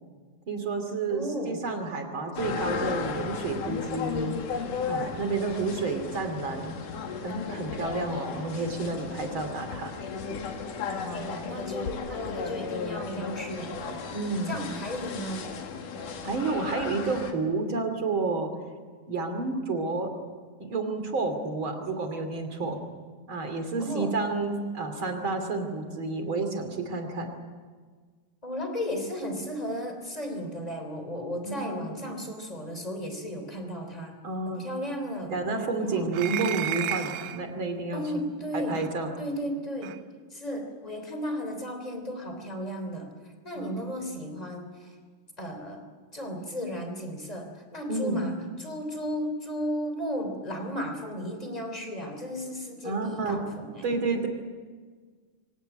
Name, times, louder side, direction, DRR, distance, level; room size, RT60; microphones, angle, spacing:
voice 1, 0.5-4.4 4.9-6.8 7.2-9.9 14.1-14.6 16.2-18.5 19.1-20.1 20.6-22.8 23.3-27.3 31.4-31.9 34.2-34.6 35.3-38.0 38.5-39.1 43.5-43.9 47.9-48.2 52.8-53.4 53.8-54.3, right 3 dB, 35° right, 6 dB, 3.1 m, -30 dB
voice 2, 1.1-1.6 10.8-14.1 14.5-15.5 23.8-24.1 28.4-35.3 35.8-36.1 37.9-38.8 39.2-40.0 40.3-45.0 45.4-45.9 46.1-53.9, equal, 10° left, 5 dB, 2.9 m, -35 dB
sound 1, 2.4-17.3, left 5 dB, 65° left, 3.3 m, -35 dB
sound 2, 36.1-37.4 38.7-38.9 39.8-40.0, right 12 dB, 75° right, 1.8 m, -32 dB
25.0 x 18.0 x 9.2 m, 1.5 s
omnidirectional pair, 4.2 m